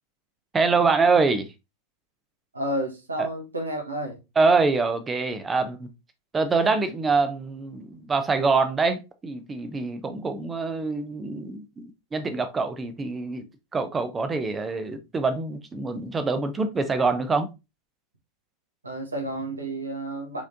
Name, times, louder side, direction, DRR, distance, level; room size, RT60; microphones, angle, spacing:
voice 1, 0.5-1.5 3.2-3.3 4.4-5.9 6.3-13.5 13.7-17.5, right 4 dB, 15° right, 0.7 m, -25 dB
voice 2, 2.5-4.2 18.8-20.4, right 1 dB, 75° right, 1.3 m, -31 dB
4.8 x 3.5 x 2.6 m
figure-of-eight pair, 90°, 0 cm